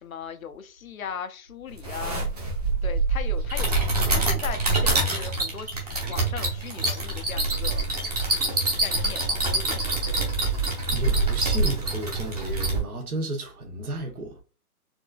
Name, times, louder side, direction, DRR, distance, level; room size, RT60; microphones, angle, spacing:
voice 1, 0.0-2.3 2.8-7.8 8.8-10.5, left 7 dB, 65° left, 0.7 m, -38 dB
sound 1, 1.8-12.8, right 2 dB, 25° right, 0.8 m, -25 dB
voice 2, 8.4-8.7 10.9-14.3, right 1 dB, 70° right, 1.5 m, -33 dB
4.3 x 2.6 x 2.3 m
hypercardioid pair, 180°, 45 cm